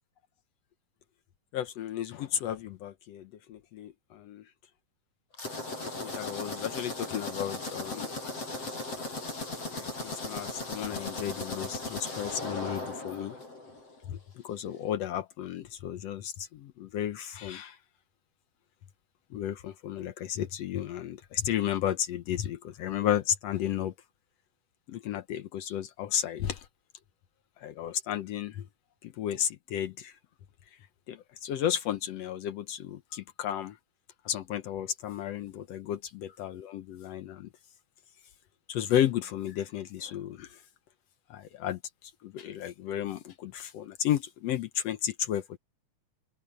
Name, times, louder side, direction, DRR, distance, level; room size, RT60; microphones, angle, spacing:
voice 1, 1.5-4.5 6.0-8.2 9.7-13.4 14.1-17.8 19.3-23.9 24.9-26.7 27.6-28.7 29.0-30.2 30.7-30.8 31.1-33.8 34.3-37.5 38.7-40.6 41.3-45.6, left 10 dB, 70° left, 1.8 m, -33 dB
sound 1, 5.3-14.0, left 2 dB, 50° left, 8.8 m, -37 dB
open air
omnidirectional pair, 3.4 m